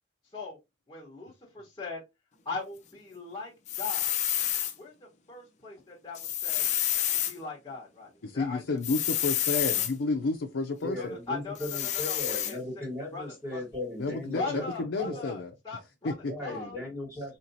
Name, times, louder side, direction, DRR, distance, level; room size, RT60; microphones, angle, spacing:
voice 1, 0.9-2.0 2.4-3.5 3.8-4.1 4.8-6.6 7.3-9.2 9.7-9.8 11.0-12.6 13.1-13.6 14.3-16.1 16.4-16.8, left 4 dB, 20° left, 1.3 m, -40 dB
sound 1, 3.7-4.7 6.1-7.3 8.8-9.9 11.6-12.5, left 11 dB, 40° left, 0.5 m, -29 dB
voice 2, 8.2-11.0 14.0-15.5 16.0-16.1, left 3 dB, 85° left, 0.5 m, -31 dB
voice 3, 10.8-14.7 15.0-15.3 16.3-17.4, left 1 dB, 15° right, 1.9 m, -37 dB
4.4 x 2.9 x 2.7 m
head